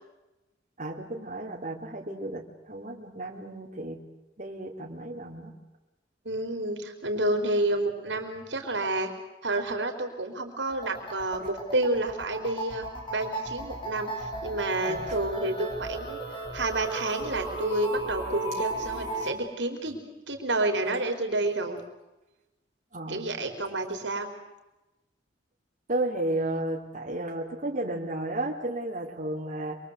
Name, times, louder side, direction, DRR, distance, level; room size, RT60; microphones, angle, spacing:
voice 1, 0.8-4.0 4.4-5.6 14.9-15.2 22.9-23.3 25.9-29.8, right 1 dB, 40° right, -2 dB, 3.7 m, -33 dB
voice 2, 6.2-9.1 9.4-16.2 16.5-21.8 23.1-24.3, right 2 dB, 75° right, 5 dB, 4.3 m, -29 dB
sound 1, 10.7-19.3, right 2 dB, 30° left, 6.0 m, -35 dB
28.0 x 23.0 x 8.2 m, 1.0 s
head